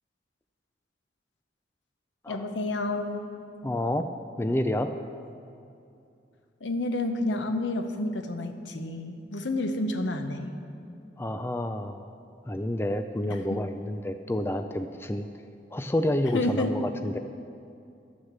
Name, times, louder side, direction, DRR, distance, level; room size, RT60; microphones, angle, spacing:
voice 1, 2.3-3.2 6.6-10.5 13.3-13.6 16.3-16.7, left 2 dB, 85° left, 7 dB, 0.9 m, -30 dB
voice 2, 3.6-4.1 4.4-4.9 11.2-12.0 12.5-15.3 15.7-17.2, left 1 dB, 15° left, 7 dB, 0.3 m, -29 dB
11.5 x 6.4 x 7.4 m, 2.5 s
head